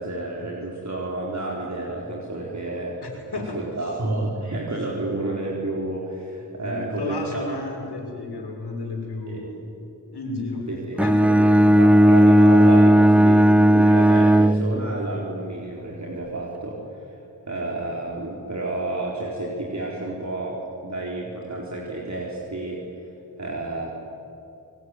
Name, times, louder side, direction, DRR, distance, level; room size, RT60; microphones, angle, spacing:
voice 1, 0.0-3.0 3.3-7.5 9.3-9.4 10.7-17.1 17.5-22.8 23.4-23.9, right 2 dB, 45° right, -3 dB, 4.1 m, -30 dB
voice 2, 3.0-3.9 4.7-4.8 6.6-9.5 10.1-10.7 10.9-11.2, left 2 dB, 75° left, 1 dB, 6.2 m, -32 dB
Bowed string instrument, 11.0-15.2, right 1 dB, 5° right, 0.5 m, -15 dB
28.0 x 19.5 x 9.6 m, 2.7 s
cardioid pair, 55°, 39 cm